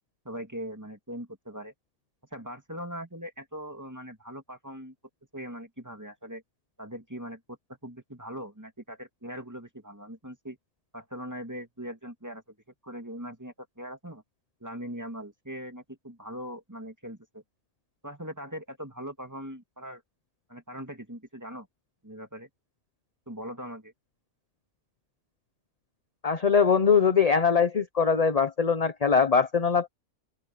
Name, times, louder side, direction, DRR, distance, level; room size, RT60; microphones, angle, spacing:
voice 1, 0.2-1.7 2.3-4.9 5.3-6.4 6.8-10.6 10.9-12.6 12.8-14.2 14.6-17.4 18.0-20.0 20.5-21.7 22.0-22.5 23.3-23.9, equal, 10° right, 2.5 m, -40 dB
voice 2, 26.2-29.9, left 6 dB, 30° left, 0.8 m, -22 dB
open air
omnidirectional pair, 1.5 m